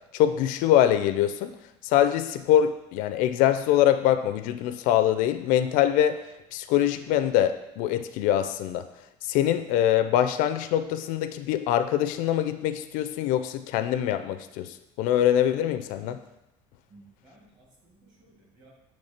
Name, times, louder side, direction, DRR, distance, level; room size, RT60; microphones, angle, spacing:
voice 1, 0.1-1.5 1.8-6.2 6.5-8.8 9.2-16.2, left 11 dB, 65° left, 10 dB, 0.4 m, -24 dB
voice 2, 16.9-18.7, right 2 dB, 30° right, -3 dB, 1.9 m, -57 dB
7.9 x 3.1 x 4.3 m, 0.91 s
cardioid pair, 160°, 15 cm